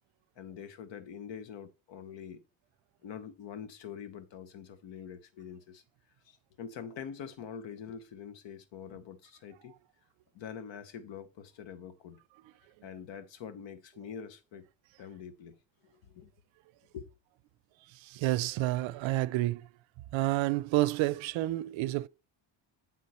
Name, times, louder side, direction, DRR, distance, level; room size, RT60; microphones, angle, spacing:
voice 1, 0.4-2.4 3.0-5.8 6.2-9.7 10.3-12.2 12.8-14.7 15.0-15.6 15.8-16.3 16.9-17.1, left 7 dB, 65° left, 1.2 m, -45 dB
voice 2, 17.9-19.7 20.1-22.1, right 17 dB, 70° right, 0.5 m, -29 dB
9.2 x 3.8 x 4.2 m
cardioid pair, 110°, 48 cm